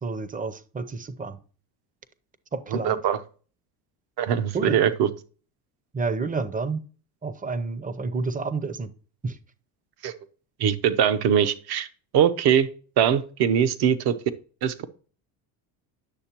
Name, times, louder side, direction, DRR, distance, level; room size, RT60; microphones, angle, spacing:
voice 1, 0.0-1.4 2.5-3.0 4.5-4.8 5.9-6.9 7.2-8.9 9.2-9.4, right 4 dB, 20° right, 14 dB, 0.6 m, -29 dB
voice 2, 2.8-3.2 4.2-5.1 10.0-10.1 10.6-11.9 12.1-12.7 13.0-14.1 14.6-14.8, right 9 dB, 60° right, 11 dB, 0.8 m, -22 dB
9.7 x 6.5 x 2.9 m, 0.40 s
supercardioid pair, 90°, 44 cm